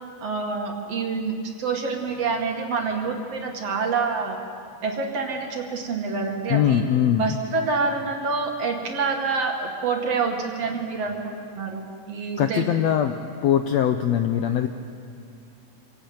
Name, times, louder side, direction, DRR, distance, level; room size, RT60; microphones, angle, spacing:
voice 1, 0.2-4.4 4.8-6.8 7.2-12.6, right 4 dB, 50° right, 1 dB, 3.0 m, -27 dB
voice 2, 6.5-7.4 12.4-14.7, left 9 dB, 80° left, 7 dB, 1.6 m, -22 dB
27.0 x 18.0 x 8.8 m, 2.4 s
omnidirectional pair, 3.9 m